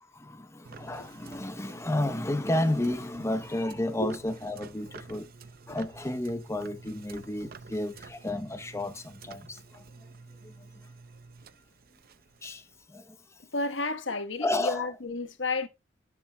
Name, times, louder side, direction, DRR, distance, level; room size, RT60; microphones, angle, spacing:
voice 1, 0.1-5.3 5.7-9.8 10.4-10.5 12.4-12.6 12.9-13.2 14.4-14.9, left 1 dB, 15° left, 0.8 m, -31 dB
sound 1, 0.6-12.8, right 4 dB, 55° right, 0.7 m, -50 dB
voice 2, 13.5-15.7, left 3 dB, 80° left, 1.3 m, -31 dB
17.0 x 7.2 x 2.2 m
head